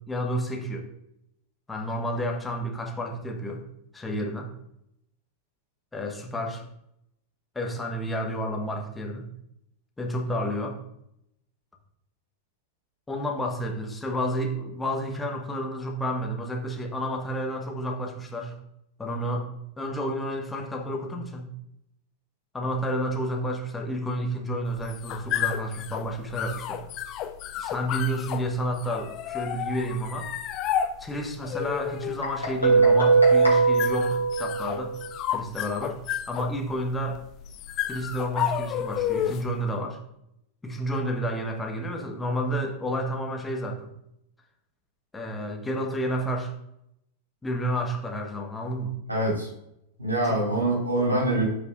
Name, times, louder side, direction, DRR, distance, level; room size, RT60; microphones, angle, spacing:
voice 1, 0.1-0.9 1.7-3.6 3.9-4.5 5.9-6.6 7.5-9.3 10.0-10.8 13.1-18.6 19.0-19.5 19.8-21.5 22.5-26.8 27.6-30.3 31.0-34.9 35.3-36.0 36.3-37.2 37.9-40.0 40.6-43.9 45.1-46.5 47.4-49.0 50.2-50.4, equal, 10° left, 1 dB, 1.3 m, -30 dB
sound 1, 24.7-39.6, left 10 dB, 35° left, 0.6 m, -32 dB
Guitar, 32.2-35.0, right 4 dB, 85° left, 2.7 m, -20 dB
voice 2, 49.1-49.5 50.0-51.4, right 1 dB, 80° right, -4 dB, 3.1 m, -24 dB
13.5 x 4.9 x 2.5 m, 0.79 s
figure-of-eight pair, 90°, 0 cm